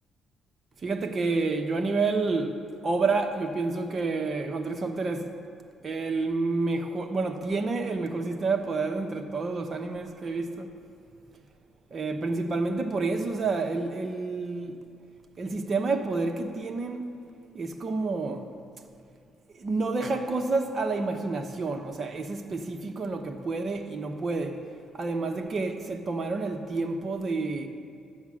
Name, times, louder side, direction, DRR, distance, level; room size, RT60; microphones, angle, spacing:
voice 1, 0.8-5.3 5.8-10.7 11.9-14.8 15.4-17.1 17.5-18.5 19.5-24.6 24.9-27.7, right 3 dB, 45° right, 1.1 m, -29 dB
13.0 x 9.2 x 6.3 m
cardioid pair, 90°, 0 cm